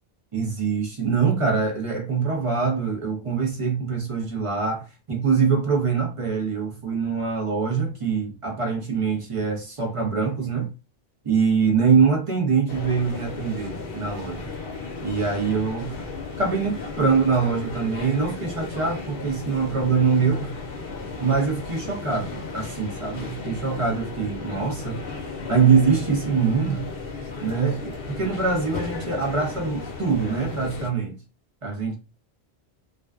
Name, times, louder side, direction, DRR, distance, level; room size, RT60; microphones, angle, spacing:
voice 1, 0.3-10.7 11.2-14.5 15.0-16.0 16.4-20.5 21.2-25.0 25.5-26.9 27.4-31.2 31.6-31.9, right 5 dB, 40° right, 0.6 m, -24 dB
sound 1, 12.7-30.9, left 4 dB, 70° left, 0.8 m, -35 dB
2.4 x 2.2 x 2.3 m
omnidirectional pair, 1.1 m